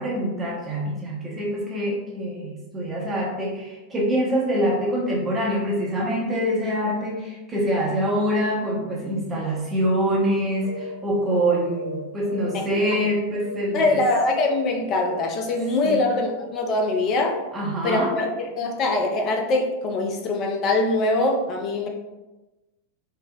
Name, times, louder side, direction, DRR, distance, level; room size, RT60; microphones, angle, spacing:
voice 1, 0.0-14.0 15.8-16.1 17.5-18.2, equal, 20° right, -4 dB, 0.6 m, -25 dB
sound 1, 10.6-10.9 11.2-11.4 11.7-13.1 13.3-13.6 13.9-14.1 14.4-14.7 14.9-15.2 15.5-15.8 16.0-16.3 16.5-16.8 17.1-17.4, left 2 dB, 75° left, 0.8 m, -35 dB
voice 2, 13.7-17.4 17.8-21.9, left 2 dB, 35° left, 2 dB, 0.4 m, -23 dB
3.6 x 2.0 x 2.2 m, 1.1 s
figure-of-eight pair, 90°, 0 cm